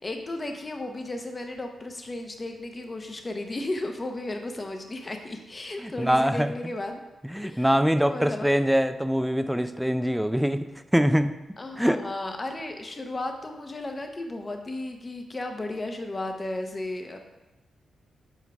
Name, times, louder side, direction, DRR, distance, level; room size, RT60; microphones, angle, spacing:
voice 1, 0.0-7.0 7.4-7.8 8.0-8.5 11.6-17.2, left 2 dB, 35° left, 4 dB, 0.9 m, -34 dB
voice 2, 5.8-6.5 7.2-11.3 11.8-12.0, equal, 5° right, 10 dB, 0.4 m, -24 dB
7.2 x 4.6 x 3.5 m, 1.0 s
supercardioid pair, 55°, 0 cm